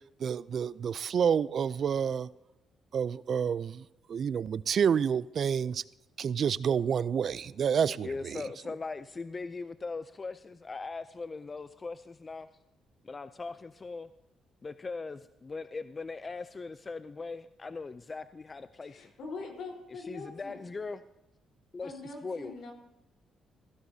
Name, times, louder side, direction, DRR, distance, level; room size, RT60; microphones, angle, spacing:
voice 1, 0.2-2.3 2.9-5.8 6.2-8.4, right 7 dB, 55° right, 0.3 m, -29 dB
voice 2, 7.4-8.4 18.8-20.8 21.7-22.7, left 3 dB, 75° left, 4.0 m, -44 dB
voice 3, 8.0-12.5 13.0-14.1 14.6-19.1 19.9-21.0 21.7-21.9 22.2-22.5, left 4 dB, 30° left, 0.4 m, -40 dB
16.0 x 15.5 x 2.7 m
cardioid pair, 90°, 0 cm